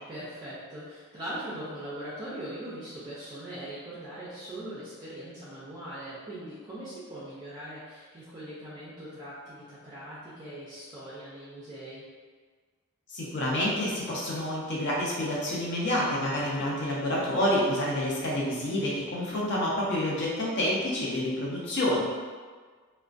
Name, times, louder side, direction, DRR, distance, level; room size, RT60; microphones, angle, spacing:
voice 1, 0.1-12.0, right 1 dB, 20° right, -10 dB, 0.4 m, -41 dB
voice 2, 13.1-22.0, left 1 dB, 55° left, -5 dB, 0.6 m, -28 dB
2.3 x 2.1 x 2.4 m, 1.5 s
head